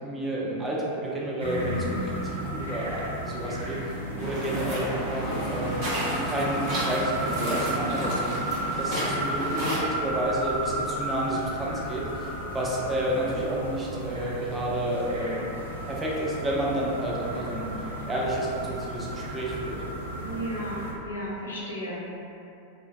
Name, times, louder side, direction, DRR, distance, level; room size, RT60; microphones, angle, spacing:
voice 1, 0.0-15.5 15.9-19.8, right 1 dB, 15° right, -5 dB, 0.5 m, -30 dB
sound 1, 1.4-20.9, right 1 dB, 80° right, 0.5 m, -33 dB
sound 2, 4.2-9.8, equal, 45° right, 0.7 m, -32 dB
voice 2, 20.2-22.0, equal, 70° left, -6 dB, 0.5 m, -34 dB
2.5 x 2.2 x 2.3 m, 2.7 s
figure-of-eight pair, 90°, 0 cm